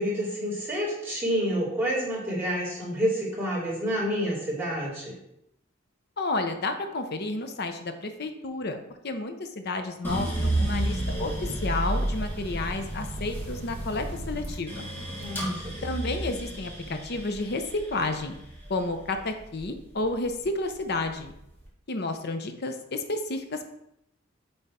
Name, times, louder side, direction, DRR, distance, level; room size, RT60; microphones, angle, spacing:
voice 1, 0.0-5.2 15.2-15.7, equal, 10° right, -8 dB, 2.8 m, -28 dB
voice 2, 6.2-8.8 9.0-14.8 15.8-18.4 18.7-21.3 21.9-23.7, left 2 dB, 55° left, 7 dB, 0.8 m, -31 dB
sound 1, 10.0-20.2 20.7-21.5, right 1 dB, 10° left, 1.6 m, -31 dB
8.8 x 3.6 x 4.3 m, 0.80 s
head